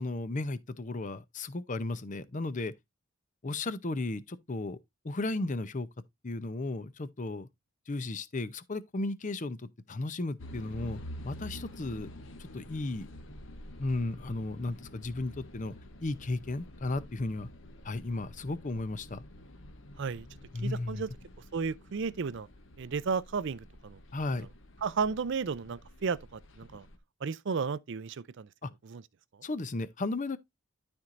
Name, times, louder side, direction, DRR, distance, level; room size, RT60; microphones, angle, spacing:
voice 1, 0.0-2.7 3.4-4.8 5.0-5.9 6.2-7.5 7.9-12.1 12.4-13.1 13.8-15.7 16.0-17.5 17.8-19.2 20.5-21.0 24.1-24.5 28.6-28.7 29.4-30.4, left 2 dB, 35° left, 0.6 m, -34 dB
sound 1, 10.4-27.0, left 1 dB, 60° left, 1.0 m, -49 dB
voice 2, 20.6-21.1 21.5-22.5 22.8-24.0 24.8-26.9 27.2-28.5 28.8-29.0 29.3-29.4, right 5 dB, 55° right, 0.5 m, -33 dB
12.5 x 4.4 x 2.5 m
head